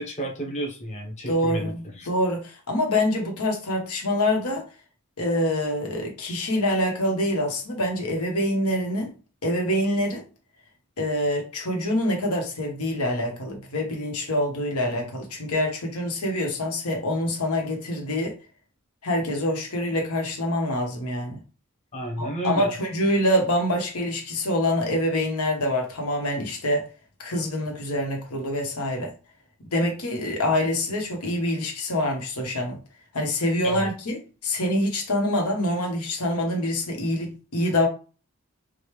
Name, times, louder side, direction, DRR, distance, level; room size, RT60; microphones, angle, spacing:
voice 1, 0.0-2.1 21.9-22.7 33.6-33.9, right 1 dB, 30° left, 0.9 m, -31 dB
voice 2, 1.3-4.6 5.2-9.1 9.4-10.2 11.0-18.3 19.0-21.4 22.2-26.8 27.2-29.1 29.7-32.8 33.1-37.9, left 1 dB, 85° left, 1.3 m, -25 dB
5.1 x 2.3 x 3.2 m
head